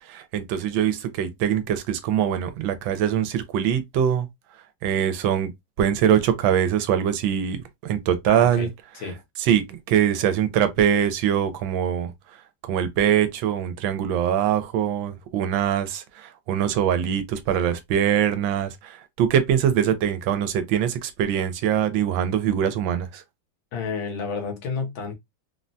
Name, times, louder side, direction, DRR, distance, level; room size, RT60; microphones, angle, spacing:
voice 1, 0.0-4.3 4.8-5.5 5.8-7.6 7.8-8.7 9.4-12.1 12.6-23.2, right 9 dB, 80° right, 1.4 m, -23 dB
voice 2, 8.3-8.7 9.0-9.2 23.7-25.1, left 5 dB, 75° left, 1.7 m, -30 dB
3.7 x 2.1 x 2.6 m
omnidirectional pair, 2.1 m